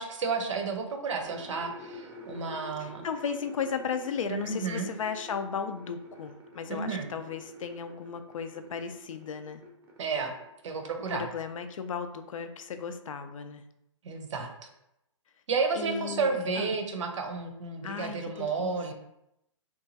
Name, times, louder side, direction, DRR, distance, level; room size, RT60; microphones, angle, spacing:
voice 1, 0.0-3.0 4.3-4.9 6.7-7.1 10.0-10.3 10.6-11.3 14.0-14.5 15.5-18.9, right 4 dB, 65° right, 4 dB, 0.6 m, -31 dB
sound 1, 1.2-10.1 10.4-11.1, left 1 dB, 10° right, 0.4 m, -48 dB
voice 2, 2.8-9.6 11.1-13.6 15.7-16.8 17.8-18.8, left 6 dB, 80° left, 9 dB, 0.4 m, -35 dB
2.9 x 2.3 x 2.7 m, 0.82 s
hypercardioid pair, 145°, 17 cm